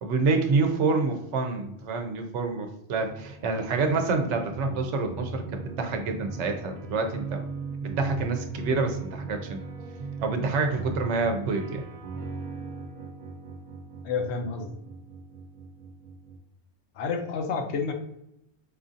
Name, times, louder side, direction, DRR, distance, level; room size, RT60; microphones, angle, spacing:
voice 1, 0.0-7.4 7.8-9.6 10.2-11.8, right 4 dB, 90° right, 5 dB, 0.9 m, -27 dB
sound 1, 3.0-16.4, right 3 dB, 55° right, 0.5 m, -39 dB
voice 2, 14.0-14.7 16.9-17.9, left 5 dB, 75° left, 4 dB, 0.9 m, -29 dB
4.8 x 2.5 x 2.6 m, 0.80 s
omnidirectional pair, 1.2 m